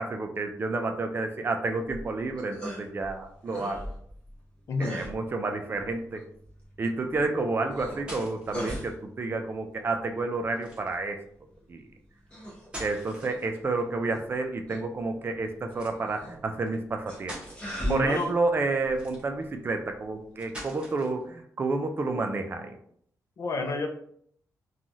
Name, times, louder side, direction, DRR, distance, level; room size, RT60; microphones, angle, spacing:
voice 1, 0.0-3.9 4.8-6.2 6.8-11.2 11.7-11.8 12.8-17.4 17.9-22.8, right 3 dB, 35° right, 5 dB, 0.4 m, -30 dB
sound 1, 1.8-20.5, equal, 15° left, 1.0 m, -42 dB
voice 2, 4.7-5.1 17.8-18.3 23.4-23.9, left 3 dB, 55° left, 4 dB, 0.5 m, -29 dB
sound 2, 7.6-8.6 10.6-11.0 12.5-13.8 15.7-16.0 16.7-16.8 17.1-17.6 18.9-19.5 20.4-21.2, equal, 15° right, 1.0 m, -43 dB
3.1 x 2.3 x 2.6 m, 0.66 s
wide cardioid pair, 125°, 6 cm